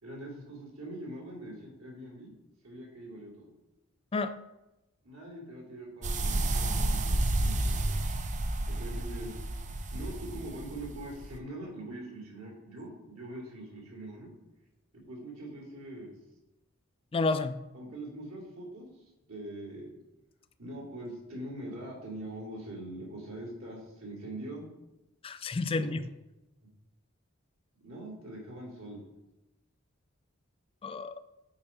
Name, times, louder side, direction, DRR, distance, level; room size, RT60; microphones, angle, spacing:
voice 1, 0.0-2.3 2.6-3.5 5.0-8.1 8.7-9.4 9.9-14.3 14.9-16.1 17.7-19.9 20.6-24.6 25.7-25.9 27.8-29.0, right 1 dB, 90° right, -2 dB, 2.7 m, -43 dB
sound 1, 6.0-11.4, right 2 dB, 35° right, 0.5 m, -31 dB
voice 2, 17.1-17.6 25.2-26.0 30.8-31.2, left 3 dB, 25° left, 11 dB, 0.3 m, -30 dB
8.7 x 4.7 x 4.3 m, 0.95 s
head